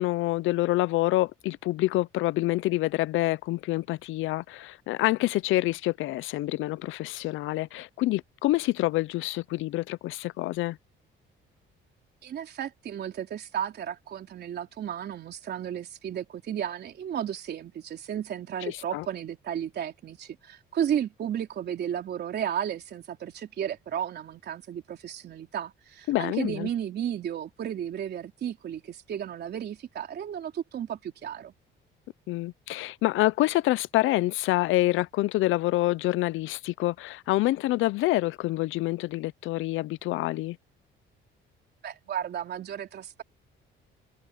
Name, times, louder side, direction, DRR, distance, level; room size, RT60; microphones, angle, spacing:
voice 1, 0.0-10.8 18.7-19.1 26.1-26.7 32.3-40.6, left 17 dB, 80° left, 0.5 m, -27 dB
voice 2, 12.2-31.5 41.8-43.2, right 9 dB, 55° right, 3.6 m, -33 dB
cardioid pair, 130°, 20 cm